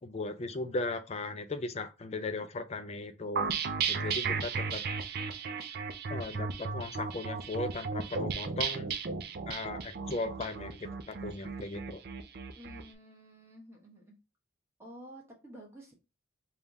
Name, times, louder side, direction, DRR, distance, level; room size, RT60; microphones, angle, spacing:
voice 1, 0.0-3.5 3.9-4.8 6.1-8.9 9.5-12.0, left 2 dB, 30° left, 0.4 m, -37 dB
sound 1, 3.4-12.8, right 5 dB, 45° right, 0.4 m, -35 dB
voice 2, 12.6-14.2 14.8-15.9, equal, 10° right, 1.0 m, -51 dB
3.6 x 2.4 x 3.9 m
head